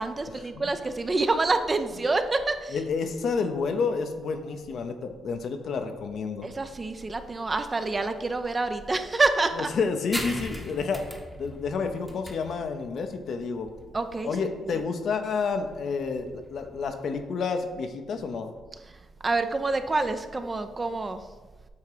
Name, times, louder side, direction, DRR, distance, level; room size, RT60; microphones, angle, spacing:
voice 1, 0.0-2.8 6.4-9.7 13.9-14.3 19.2-21.2, right 3 dB, 25° right, 9 dB, 0.5 m, -27 dB
voice 2, 2.7-6.5 9.6-13.7 14.2-18.5, left 5 dB, 60° left, 7 dB, 0.7 m, -30 dB
sound 1, 10.1-17.2, equal, ahead, 0.9 m, -40 dB
8.3 x 2.8 x 4.9 m, 1.3 s
cardioid pair, 90°, 0 cm